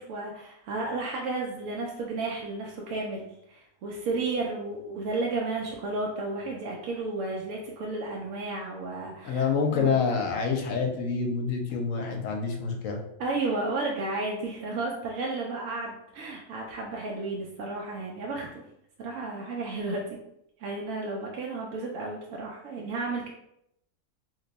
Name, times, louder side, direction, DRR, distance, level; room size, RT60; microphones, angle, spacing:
voice 1, 0.0-10.0 13.2-18.6 19.0-20.2 20.6-23.3, right 3 dB, 70° right, -2 dB, 0.9 m, -33 dB
voice 2, 9.2-13.0, left 5 dB, 70° left, 2 dB, 0.9 m, -27 dB
2.8 x 2.2 x 3.9 m, 0.78 s
omnidirectional pair, 1.5 m